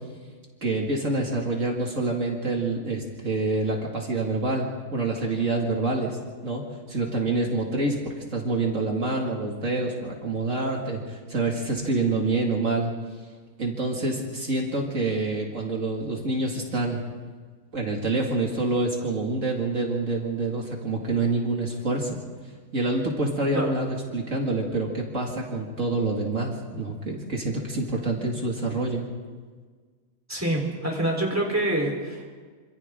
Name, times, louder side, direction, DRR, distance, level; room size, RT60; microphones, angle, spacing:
voice 1, 0.6-6.6 6.9-12.9 13.6-17.0 17.7-29.0, right 2 dB, 65° right, -1 dB, 2.7 m, -27 dB
voice 2, 30.3-32.3, right 1 dB, 10° right, -1 dB, 4.0 m, -26 dB
27.0 x 26.5 x 3.8 m, 1.5 s
omnidirectional pair, 1.4 m